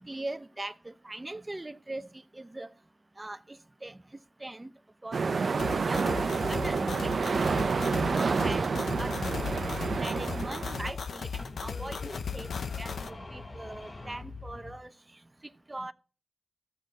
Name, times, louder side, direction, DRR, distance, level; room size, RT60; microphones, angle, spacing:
voice 1, 0.0-2.7 3.2-4.0 4.4-4.7 5.0-7.5 8.1-8.7 9.0-9.6 10.0-12.5 12.8-14.9 15.7-15.9, right 2 dB, 20° right, 0.7 m, -41 dB
sound 1, 5.1-10.9, right 4 dB, 65° right, 0.7 m, -29 dB
sound 2, 5.6-13.1, left 6 dB, 85° left, 0.8 m, -37 dB
sound 3, 6.3-8.8 9.1-11.1 11.4-14.8, left 2 dB, 35° left, 1.0 m, -44 dB
14.0 x 7.9 x 4.1 m
wide cardioid pair, 85°, 0 cm